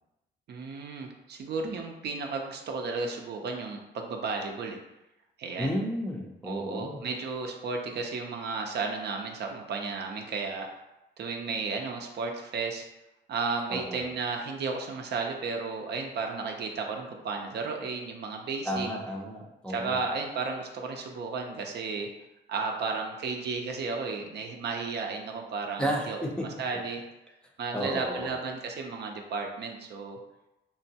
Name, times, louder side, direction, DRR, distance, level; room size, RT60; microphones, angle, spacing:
voice 1, 0.5-4.8 5.4-5.7 6.4-10.7 11.2-12.8 13.3-18.9 19.7-22.1 22.5-27.0 27.6-30.2, right 4 dB, 55° right, 2 dB, 0.5 m, -33 dB
voice 2, 5.6-7.0 13.7-14.0 18.7-20.0 25.8-26.5 27.7-28.3, equal, 5° left, -2 dB, 0.5 m, -32 dB
3.7 x 2.2 x 2.7 m, 0.96 s
cardioid pair, 90°, 20 cm